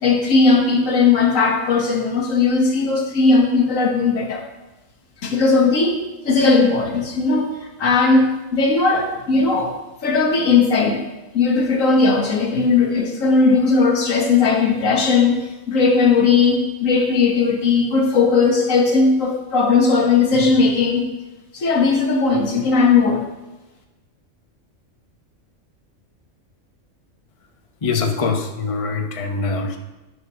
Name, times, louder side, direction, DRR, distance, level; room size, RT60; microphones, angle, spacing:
voice 1, 0.0-4.4 5.2-7.5 7.8-9.7 10.0-11.0 11.3-21.1 21.5-23.2, left 4 dB, 80° left, 2 dB, 1.5 m, -17 dB
voice 2, 27.8-29.8, left 4 dB, 30° left, 4 dB, 0.8 m, -23 dB
9.4 x 5.1 x 6.1 m, 1.1 s
omnidirectional pair, 1.3 m